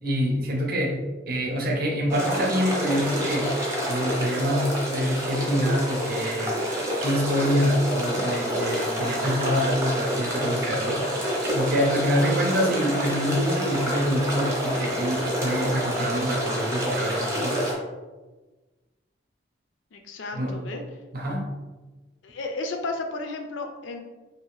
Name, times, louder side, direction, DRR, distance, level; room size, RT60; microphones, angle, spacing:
voice 1, 0.0-3.6 3.9-6.6 7.0-11.0 11.5-17.7 20.3-20.5 21.1-21.6, equal, 50° right, 0 dB, 0.6 m, -26 dB
sound 1, 2.1-17.7, equal, 15° right, 0.6 m, -28 dB
voice 2, 19.9-20.8 22.2-24.0, left 3 dB, 80° left, 4 dB, 0.4 m, -33 dB
2.7 x 2.5 x 3.1 m, 1.2 s
head